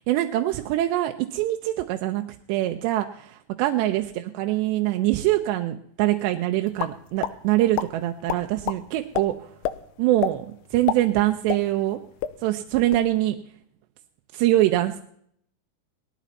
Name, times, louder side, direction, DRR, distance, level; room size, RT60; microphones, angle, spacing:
voice 1, 0.1-2.2 2.5-9.3 10.0-12.0 12.4-13.4 14.3-15.0, right 15 dB, 85° right, 6 dB, 2.9 m, -24 dB
sound 1, 6.8-7.3 7.7-7.9 8.3-8.8 9.1-9.2 9.6-9.8 10.2-10.4 10.7-11.9 12.2-12.3 12.7-13.1, left 11 dB, 80° left, 2.7 m, -27 dB
19.0 x 12.5 x 4.1 m, 0.66 s
omnidirectional pair, 4.9 m